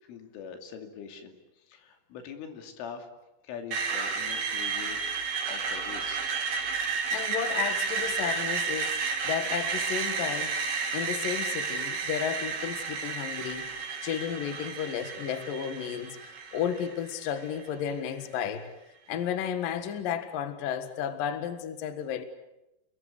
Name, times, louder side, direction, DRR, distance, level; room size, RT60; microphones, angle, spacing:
voice 1, 0.1-1.4 1.7-3.1 3.4-5.2 5.5-6.3, left 6 dB, 85° left, 5 dB, 5.0 m, -43 dB
Screech, 3.7-17.7, right 5 dB, 55° right, 4.8 m, -32 dB
voice 2, 7.1-10.6 10.9-18.7 19.1-22.2, left 8 dB, 60° left, 9 dB, 2.8 m, -33 dB
29.5 x 21.5 x 8.3 m, 0.92 s
omnidirectional pair, 5.5 m